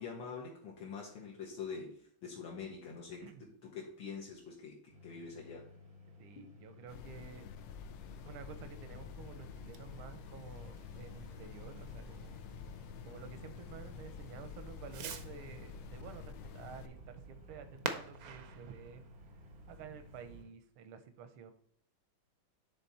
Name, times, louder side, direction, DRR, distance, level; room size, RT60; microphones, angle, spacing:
voice 1, 0.0-3.2 3.6-5.7, left 5 dB, 65° left, -3 dB, 1.9 m, -45 dB
voice 2, 3.2-3.5 6.2-7.5 8.2-12.4 13.0-19.0 19.7-21.5, right 7 dB, 90° right, 9 dB, 1.7 m, -51 dB
sound 1, 4.9-20.5, left 3 dB, 30° right, 0.6 m, -57 dB
sound 2, 6.9-16.9, left 6 dB, 90° left, 1.5 m, -49 dB
Fireworks, 9.0-20.4, right 7 dB, 70° right, 0.9 m, -49 dB
10.0 x 3.6 x 4.1 m, 0.62 s
omnidirectional pair, 2.3 m